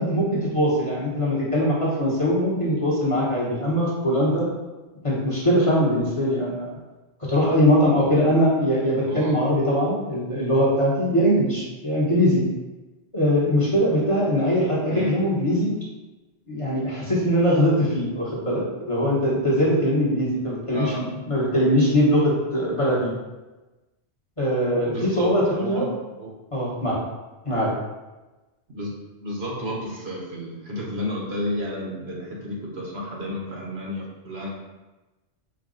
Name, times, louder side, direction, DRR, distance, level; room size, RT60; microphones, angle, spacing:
voice 1, 0.0-4.5 5.0-6.7 7.3-12.4 13.1-15.7 16.5-23.1 24.4-25.9 26.5-26.9 27.4-27.7, equal, 30° left, -7 dB, 1.0 m, -21 dB
voice 2, 9.1-9.4 14.9-15.1 20.7-21.0 24.8-25.9 26.2-26.3 28.7-28.9 29.2-34.5, equal, 65° right, -3 dB, 1.2 m, -31 dB
4.6 x 2.3 x 3.7 m, 1.1 s
omnidirectional pair, 1.2 m